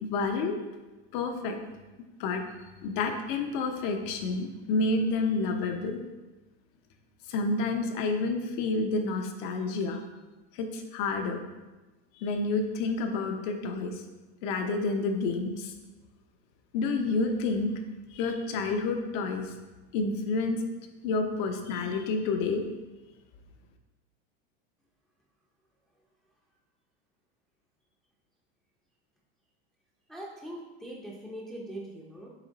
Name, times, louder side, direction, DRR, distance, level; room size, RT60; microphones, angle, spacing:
voice 1, 0.0-0.6 1.1-1.6 2.2-2.4 2.8-6.0 7.3-10.0 10.5-11.4 12.1-14.0 14.4-15.7 16.7-17.8 18.1-19.5 19.9-20.6 21.0-22.6, left 3 dB, 50° left, 4 dB, 0.8 m, -29 dB
voice 2, 30.1-32.3, right 1 dB, ahead, -4 dB, 0.6 m, -41 dB
7.2 x 3.2 x 4.0 m, 1.1 s
supercardioid pair, 145°, 32 cm